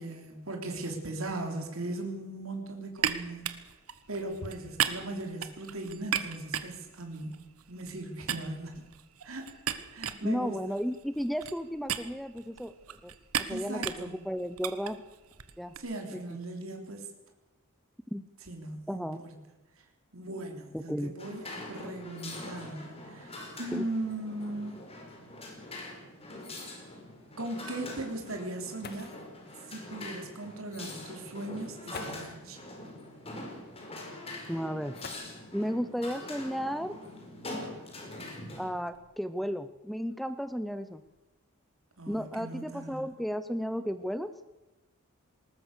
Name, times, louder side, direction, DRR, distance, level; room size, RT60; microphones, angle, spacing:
voice 1, 0.0-3.6 4.1-7.4 7.7-8.9 9.2-9.5 9.9-10.6 13.5-14.2 15.8-17.1 18.5-19.4 20.1-24.8 27.4-29.1 29.7-32.6 42.0-43.0, right 2 dB, 65° right, 3 dB, 3.4 m, -38 dB
sound 1, 3.0-8.0 8.3-15.8, right 9 dB, 85° right, 1.3 m, -36 dB
voice 2, 10.2-15.0 15.6-15.7 16.1-16.2 18.1-18.2 18.9-19.2 20.7-21.1 21.8-22.0 23.7-23.8 34.5-35.2 35.5-36.9 38.6-41.0 42.1-44.3, equal, ahead, 12 dB, 0.6 m, -34 dB
sound 2, 21.2-38.7, left 1 dB, 30° left, 5.1 m, -43 dB
sound 3, 28.8-29.4 30.7-30.8 31.9-32.5 35.0-35.7 37.1-37.2 37.9-39.4 40.1-40.4 40.8-41.2, left 5 dB, 50° left, 1.7 m, -49 dB
20.0 x 19.5 x 6.7 m, 1.0 s
head